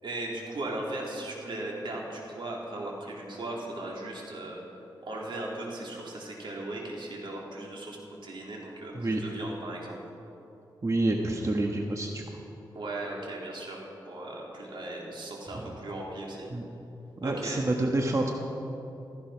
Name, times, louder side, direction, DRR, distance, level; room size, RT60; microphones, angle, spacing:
voice 1, 0.0-4.6 5.0-8.0 8.2-10.0 12.8-16.5 17.2-17.6, right 2 dB, 75° right, -2 dB, 3.5 m, -37 dB
voice 2, 10.8-12.2 16.5-16.7 17.2-18.3, right 2 dB, 40° right, 1 dB, 1.3 m, -28 dB
15.5 x 14.5 x 5.8 m, 3.0 s
wide cardioid pair, 80°, 8 cm